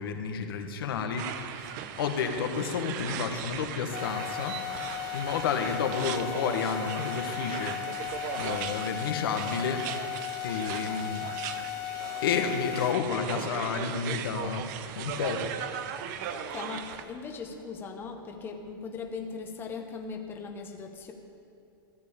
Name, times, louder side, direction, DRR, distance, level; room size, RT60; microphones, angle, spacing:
voice 1, 0.0-4.6 5.1-9.8 10.4-11.3 11.7-14.7 14.9-15.5 16.2-16.4, left 6 dB, 80° left, 5 dB, 1.4 m, -31 dB
sound 1, 1.2-17.0, right 9 dB, 50° right, 0.8 m, -38 dB
sound 2, 3.9-12.9, left 15 dB, 40° left, 0.4 m, -36 dB
voice 2, 16.3-21.1, left 5 dB, 20° left, 3 dB, 1.0 m, -39 dB
14.0 x 6.7 x 8.7 m, 2.7 s
supercardioid pair, 145°, 12 cm